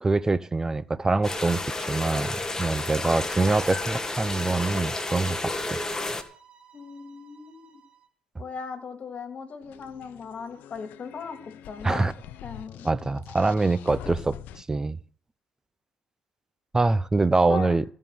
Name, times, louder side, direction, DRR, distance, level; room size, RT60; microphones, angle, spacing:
voice 1, 0.0-5.8 11.8-12.1 12.8-15.0 16.7-17.8, right 3 dB, 20° right, 0.7 m, -24 dB
sound 1, 1.2-6.2, left 2 dB, 20° left, 1.8 m, -31 dB
sound 2, 3.1-8.1, right 7 dB, 35° right, 2.2 m, -51 dB
voice 2, 6.7-7.8 8.4-12.1 12.4-12.9 17.5-17.8, left 4 dB, 45° left, 2.8 m, -38 dB
sound 3, 9.6-14.6, left 10 dB, 80° left, 0.8 m, -44 dB
15.0 x 5.5 x 9.3 m
supercardioid pair, 80°, 3 cm